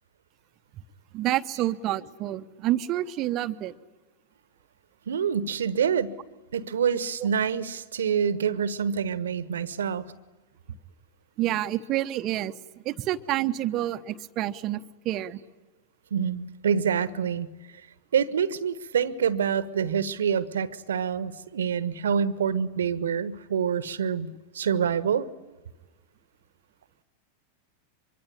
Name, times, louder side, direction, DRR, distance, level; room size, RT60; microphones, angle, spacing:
voice 1, 1.1-3.7 11.4-12.5 12.8-15.4, right 14 dB, 35° right, 12 dB, 1.0 m, -28 dB
voice 2, 5.1-6.2 6.5-10.1 16.1-17.5 18.1-24.3 24.5-25.3, right 7 dB, 65° right, 17 dB, 1.2 m, -26 dB
25.0 x 23.5 x 10.0 m, 1.2 s
figure-of-eight pair, 90°, 0 cm